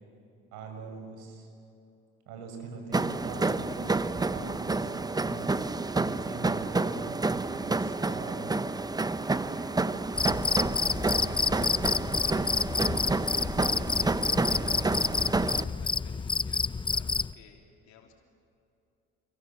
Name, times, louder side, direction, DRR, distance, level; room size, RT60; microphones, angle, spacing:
voice 1, 0.5-1.5 2.3-5.6 6.0-8.6, right 3 dB, 80° right, 4 dB, 6.0 m, -42 dB
sound 1, 2.9-15.6, right 3 dB, 15° right, 0.8 m, -29 dB
voice 2, 9.2-14.1 14.5-18.1, left 7 dB, 75° left, 1 dB, 3.3 m, -55 dB
Cricket, 10.1-17.3, left 4 dB, 15° left, 0.6 m, -29 dB
28.0 x 23.5 x 7.2 m, 2.7 s
supercardioid pair, 85°, 29 cm